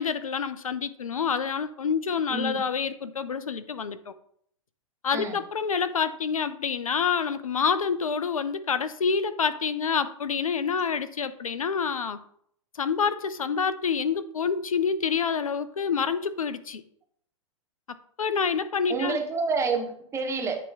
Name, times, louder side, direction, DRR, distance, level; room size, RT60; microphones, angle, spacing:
voice 1, 0.0-4.1 5.0-12.2 12.7-16.8 17.9-19.2, left 6 dB, 85° left, 13 dB, 0.6 m, -27 dB
voice 2, 2.3-2.6 5.1-5.4 18.9-20.6, right 4 dB, 15° right, 2 dB, 1.3 m, -28 dB
8.8 x 3.0 x 4.9 m, 0.67 s
hypercardioid pair, 120°, 17 cm